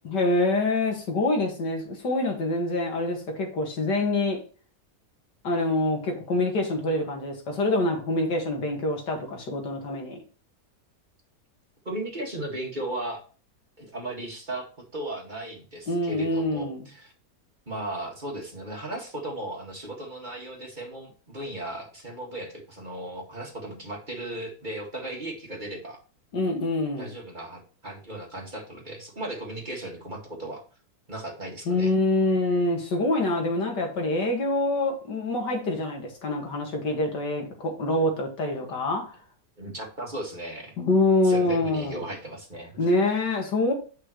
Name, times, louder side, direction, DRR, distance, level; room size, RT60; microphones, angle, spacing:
voice 1, 0.0-4.4 5.4-10.2 15.9-16.8 26.3-27.1 31.7-39.1 40.8-42.0 42.8-43.7, left 2 dB, 85° left, 2.5 m, -25 dB
voice 2, 11.9-13.2 13.8-17.1 17.7-26.0 27.0-30.6 31.1-31.9 38.6-38.7 39.6-40.7 41.2-42.9, right 1 dB, 30° right, 1.9 m, -36 dB
8.8 x 5.6 x 3.1 m
omnidirectional pair, 1.8 m